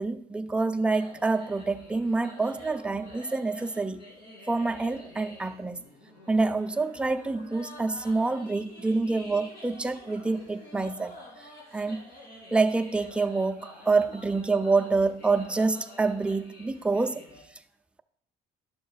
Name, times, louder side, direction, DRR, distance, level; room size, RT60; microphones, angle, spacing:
voice 1, 0.0-4.0 4.5-5.8 6.3-11.1 11.7-12.0 12.5-17.2, right 3 dB, 5° right, 0.3 m, -27 dB
sound 1, 0.9-17.4, left 1 dB, 65° left, 2.9 m, -48 dB
10.5 x 6.5 x 2.4 m
cardioid pair, 110°, 17 cm